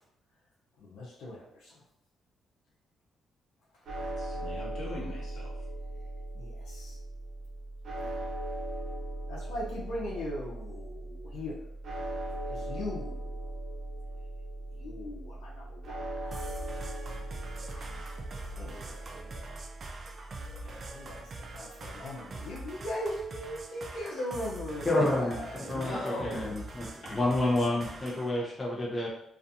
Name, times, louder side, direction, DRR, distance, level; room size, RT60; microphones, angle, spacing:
voice 1, 0.8-1.8 6.3-6.9 8.0-8.1 9.3-11.6 12.3-13.3 14.8-16.5 18.5-19.6 20.5-25.8, left 1 dB, 85° left, -5 dB, 0.7 m, -40 dB
sound 1, 3.9-22.1, right 1 dB, 60° right, 0.8 m, -39 dB
voice 2, 4.2-5.5 25.7-26.6 27.0-27.2, left 1 dB, 60° left, -5 dB, 1.2 m, -39 dB
sound 2, 16.3-28.3, right 2 dB, 45° right, 0.3 m, -44 dB
voice 3, 24.9-29.1, left 2 dB, 20° left, -4 dB, 0.6 m, -29 dB
2.4 x 2.4 x 2.7 m, 0.72 s
cardioid pair, 100°, 0 cm